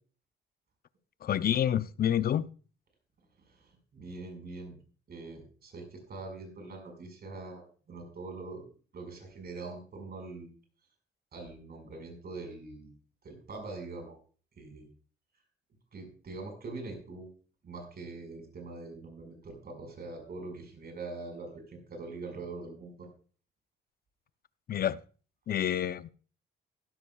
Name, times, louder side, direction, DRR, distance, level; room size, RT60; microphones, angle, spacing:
voice 1, 1.2-2.5 24.7-25.0 25.5-26.1, left 10 dB, 50° left, 0.6 m, -28 dB
voice 2, 3.9-4.8 5.1-7.6 7.9-8.7 8.9-10.5 11.3-12.9 13.2-14.2 14.6-14.9 15.9-17.3 17.6-23.1, right 3 dB, 50° right, 5.3 m, -43 dB
15.5 x 12.5 x 2.4 m
cardioid pair, 90°, 20 cm